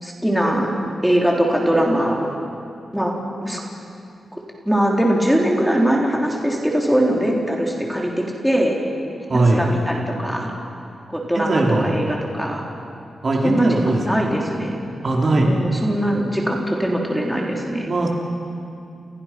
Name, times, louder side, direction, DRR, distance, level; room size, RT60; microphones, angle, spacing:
voice 1, 0.0-0.8 1.0-2.4 2.9-3.1 3.4-3.6 4.3-4.4 4.6-8.1 8.4-8.8 9.5-10.5 11.1-12.7 13.4-14.7 15.3-17.9, equal, ahead, -2 dB, 3.4 m, -21 dB
voice 2, 9.3-9.7 11.3-12.0 13.2-14.0 15.0-15.5 17.9-18.1, right 2 dB, 40° right, -1 dB, 3.1 m, -19 dB
29.5 x 29.0 x 5.9 m, 2.5 s
wide cardioid pair, 165°, 0 cm